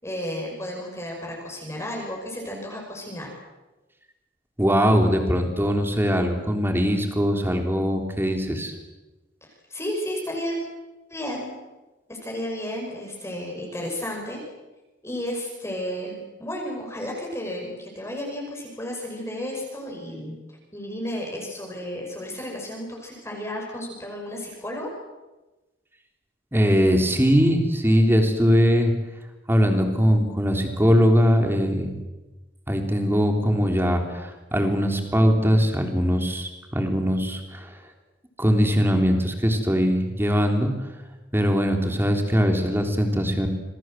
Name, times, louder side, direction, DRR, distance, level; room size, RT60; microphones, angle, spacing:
voice 1, 0.0-3.3 9.4-10.6 11.1-11.5 12.1-14.4 15.0-20.4 20.7-24.9, left 1 dB, 15° left, -1 dB, 5.9 m, -33 dB
voice 2, 4.6-8.7 26.5-28.9 29.5-32.0 32.7-37.8 38.4-40.7 41.3-43.5, equal, 10° right, 4 dB, 3.7 m, -21 dB
28.0 x 22.0 x 7.8 m, 1.1 s
head